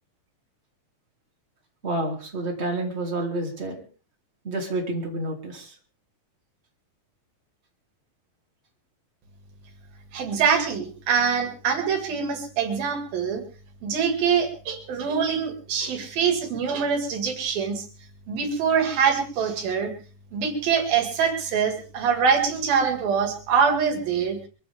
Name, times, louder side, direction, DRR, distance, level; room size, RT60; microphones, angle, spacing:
voice 1, 1.8-3.8 4.4-5.7, right 2 dB, 20° right, 0 dB, 3.4 m, -29 dB
voice 2, 10.1-13.4 13.8-17.9 18.3-19.9 20.3-24.4, right 6 dB, 85° right, 6 dB, 4.1 m, -24 dB
23.0 x 15.5 x 3.6 m, 0.37 s
omnidirectional pair, 4.1 m